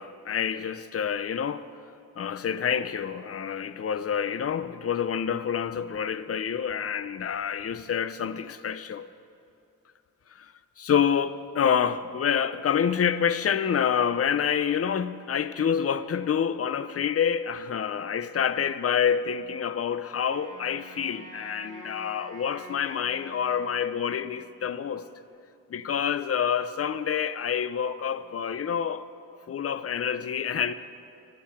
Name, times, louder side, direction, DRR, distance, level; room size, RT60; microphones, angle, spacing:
voice 1, 0.0-1.7 2.2-9.1 10.3-10.5 10.8-25.1 25.7-29.0 29.5-30.7, left 8 dB, 45° left, 0.5 m, -27 dB
Wind instrument woodwind instrument, 20.2-24.6, right 1 dB, 25° right, 3.2 m, -47 dB
14.0 x 10.5 x 5.8 m
wide cardioid pair, 85°, 33 cm